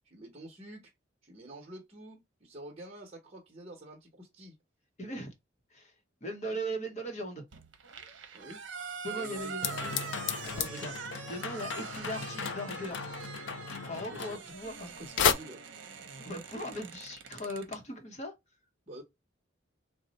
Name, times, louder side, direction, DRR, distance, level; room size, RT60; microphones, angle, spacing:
voice 1, 0.0-0.9 1.2-4.5 8.3-8.6 9.1-10.1 10.4-10.6 14.1-14.4 15.0-15.6 18.9-19.0, right 1 dB, 30° right, 0.9 m, -48 dB
voice 2, 5.0-5.3 5.7-5.9 6.2-7.4 9.0-9.7 10.6-10.9 11.3-13.0 13.7-14.9 16.2-18.3, equal, 35° left, 0.8 m, -38 dB
sound 1, 7.5-17.8, right 6 dB, 75° right, 0.7 m, -44 dB
sound 2, 9.6-14.9 15.2-15.3, left 6 dB, 75° left, 0.4 m, -33 dB
4.0 x 2.1 x 4.0 m
head